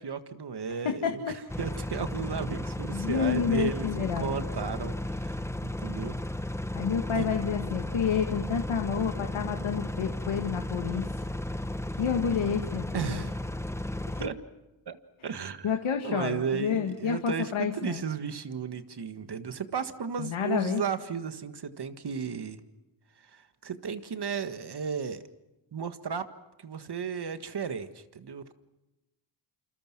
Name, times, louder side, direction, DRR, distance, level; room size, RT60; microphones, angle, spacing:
voice 1, 0.0-6.2 7.2-7.3 12.9-13.4 14.2-14.4 14.9-15.0 15.2-15.7 16.0-22.6 23.3-25.2 25.7-26.3 26.6-28.5, right 6 dB, 55° right, 10 dB, 1.7 m, -34 dB
voice 2, 0.8-1.4 2.9-4.4 6.7-11.2 12.0-13.2 14.1-14.3 15.6-18.0 20.2-20.8, left 7 dB, 75° left, 4 dB, 1.9 m, -29 dB
sound 1, 1.5-14.3, left 1 dB, 5° left, 1.0 m, -34 dB
28.0 x 27.0 x 6.1 m, 1.0 s
cardioid pair, 75°, 48 cm